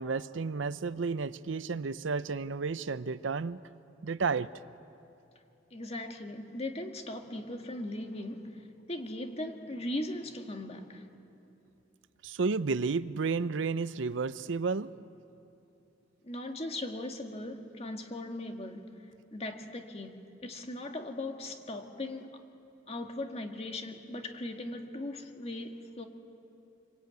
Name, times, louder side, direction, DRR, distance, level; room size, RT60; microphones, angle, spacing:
voice 1, 0.0-3.6 4.0-4.5 12.2-14.9, right 4 dB, 80° right, 0.6 m, -32 dB
voice 2, 5.7-11.1 16.2-19.1 19.3-22.4 22.9-26.1, left 1 dB, 35° left, 1.9 m, -39 dB
26.0 x 24.0 x 9.3 m
head